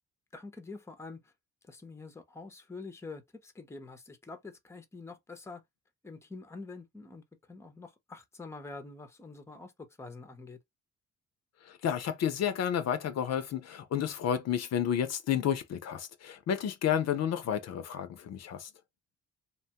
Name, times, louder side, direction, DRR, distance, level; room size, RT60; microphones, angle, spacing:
voice 1, 0.3-1.3 1.6-5.6 6.0-10.6, left 3 dB, 10° left, 0.6 m, -46 dB
voice 2, 11.6-18.7, left 9 dB, 60° left, 0.5 m, -31 dB
2.9 x 2.2 x 2.8 m
cardioid pair, 90°, 30 cm